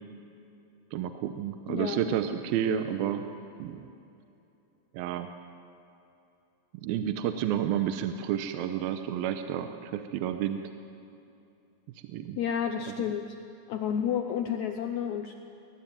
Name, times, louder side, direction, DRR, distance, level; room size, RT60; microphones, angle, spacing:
voice 1, 0.9-3.3 3.6-3.9 4.9-5.3 6.7-10.7 12.1-12.4 13.0-13.1, right 10 dB, 80° right, 8 dB, 2.6 m, -30 dB
voice 2, 1.7-2.2 12.4-13.3 13.7-15.3, left 8 dB, 80° left, 6 dB, 1.7 m, -31 dB
22.0 x 19.0 x 9.1 m, 2.8 s
omnidirectional pair, 4.4 m